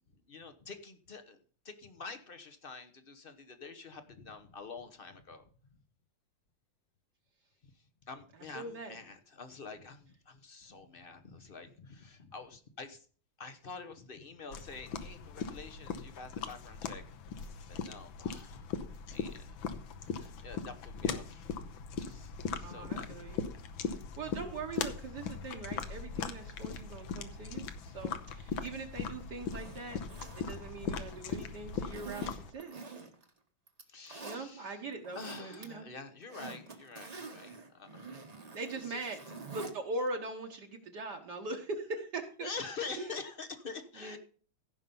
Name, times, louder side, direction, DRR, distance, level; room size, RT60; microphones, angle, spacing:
voice 1, 0.1-1.4 1.6-5.5 7.6-13.1 13.4-17.0 17.7-23.2 33.9-34.8 35.1-39.2 42.4-44.2, left 4 dB, 40° left, 9 dB, 0.8 m, -47 dB
voice 2, 8.5-8.9 22.6-23.4 24.2-32.9 34.2-35.9 38.5-42.5 43.0-43.1 44.0-44.2, right 3 dB, 60° right, 2 dB, 1.6 m, -41 dB
sound 1, 14.5-32.5, left 6 dB, 75° left, 1.7 m, -39 dB
Zipper (clothing), 29.4-31.3 31.9-33.3 33.7-34.4 34.9-35.6 36.0-39.7 40.1-40.2, right 4 dB, 25° right, 1.0 m, -47 dB
15.5 x 5.6 x 5.3 m, 0.42 s
omnidirectional pair, 2.2 m